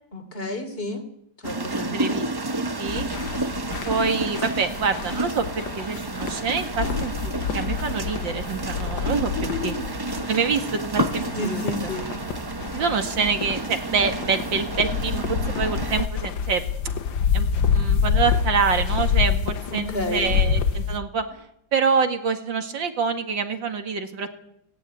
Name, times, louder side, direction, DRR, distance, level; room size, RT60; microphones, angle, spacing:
voice 1, 0.1-1.0 1.4-2.2 9.4-9.9 11.3-12.1 19.7-20.3, left 2 dB, 30° left, 9 dB, 3.2 m, -30 dB
sound 1, 1.4-16.1, right 2 dB, 35° right, 0.4 m, -31 dB
voice 2, 1.7-2.2 2.6-3.1 3.9-9.3 9.6-9.8 10.3-11.6 12.7-16.6 17.3-17.5 17.7-21.2 21.7-24.3, right 5 dB, 80° right, 7 dB, 2.6 m, -26 dB
sound 2, 2.9-21.0, left 6 dB, 85° left, 2.0 m, -27 dB
17.5 x 17.0 x 9.4 m, 0.75 s
omnidirectional pair, 2.0 m